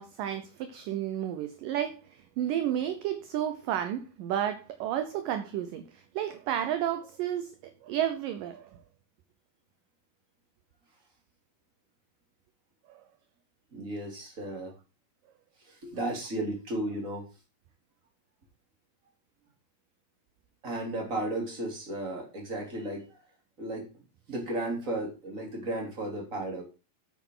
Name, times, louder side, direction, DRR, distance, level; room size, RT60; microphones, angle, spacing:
voice 1, 0.0-7.5 7.8-8.7 12.9-13.0, right 10 dB, 70° right, 2.3 m, -32 dB
voice 2, 13.7-14.7 15.7-17.3 20.6-23.1 23.6-23.9 24.3-26.6, right 1 dB, 20° right, 3.4 m, -34 dB
10.5 x 8.8 x 3.9 m
omnidirectional pair, 4.5 m